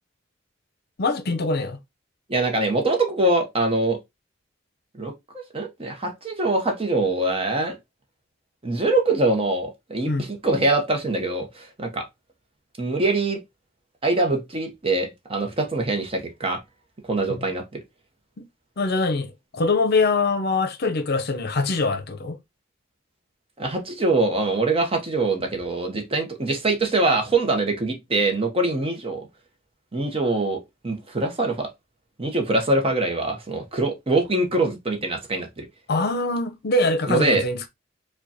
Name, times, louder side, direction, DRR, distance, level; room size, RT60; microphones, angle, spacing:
voice 1, 1.0-1.8 10.1-10.3 17.3-17.4 18.8-22.4 35.9-37.7, left 3 dB, 55° left, 0.6 m, -23 dB
voice 2, 2.3-4.0 5.0-5.1 5.5-7.8 8.6-12.1 12.8-13.4 14.0-16.6 17.1-17.8 23.6-29.3 29.9-31.7 32.2-35.6 37.1-37.4, right 2 dB, 30° right, 0.8 m, -23 dB
4.8 x 2.2 x 2.8 m
head